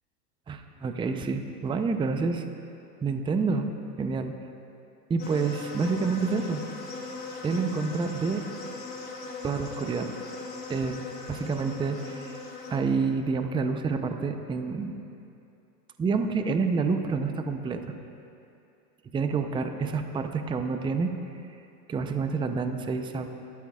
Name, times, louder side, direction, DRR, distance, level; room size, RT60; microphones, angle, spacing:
voice 1, 0.5-2.4 3.0-3.7 4.0-4.3 5.1-6.6 7.4-8.4 9.4-10.1 10.7-12.4 12.7-15.0 16.0-17.8 19.1-21.1 21.9-23.3, right 4 dB, 10° right, 7 dB, 0.6 m, -28 dB
sound 1, 5.2-12.8, left 3 dB, 20° left, 2.8 m, -39 dB
28.5 x 13.0 x 2.4 m, 2.6 s
hypercardioid pair, 110°, 47 cm